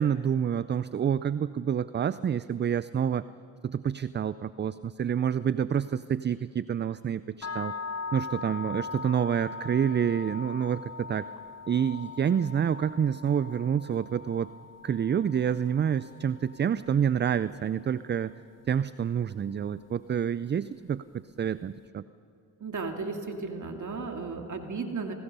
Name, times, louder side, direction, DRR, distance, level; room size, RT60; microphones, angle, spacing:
voice 1, 0.0-3.3 3.6-7.7 8.1-11.3 11.7-14.5 14.8-18.4 18.7-22.0, right 8 dB, 25° right, 16 dB, 0.4 m, -28 dB
sound 1, 7.4-17.5, left 4 dB, 35° left, 0.8 m, -41 dB
voice 2, 22.6-25.1, right 4 dB, 45° right, 4 dB, 2.4 m, -34 dB
27.0 x 19.0 x 5.5 m, 2.7 s
supercardioid pair, 55°, 43 cm